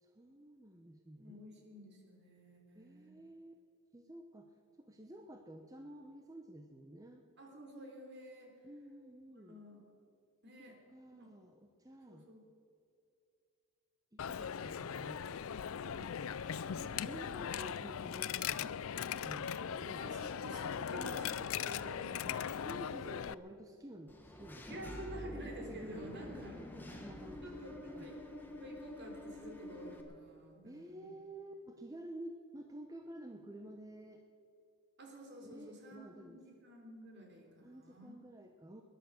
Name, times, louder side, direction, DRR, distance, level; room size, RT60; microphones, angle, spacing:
voice 1, 0.0-1.4 2.7-3.6 3.9-4.5 4.8-7.2 8.6-9.6 10.6-12.3 14.1-15.3 16.7-20.1 21.0-21.2 22.3-22.4 22.6-24.7 25.9-28.1 30.6-34.2 35.4-36.7 37.6-38.8, right 1 dB, 15° right, 4 dB, 0.8 m, -51 dB
voice 2, 1.2-3.1 7.4-8.5 9.3-9.8 10.4-10.8 11.1-11.3 12.1-12.4 15.8-16.9 20.0-22.5 24.7-26.5 27.4-28.3 28.6-31.1 35.0-38.1, right 1 dB, 50° right, 1 dB, 3.5 m, -50 dB
Coin (dropping), 14.2-23.3, left 8 dB, 70° left, 0.4 m, -39 dB
Engine / Mechanisms, 24.1-30.0, left 1 dB, 10° left, 1.5 m, -48 dB
20.5 x 11.0 x 6.5 m, 2.5 s
head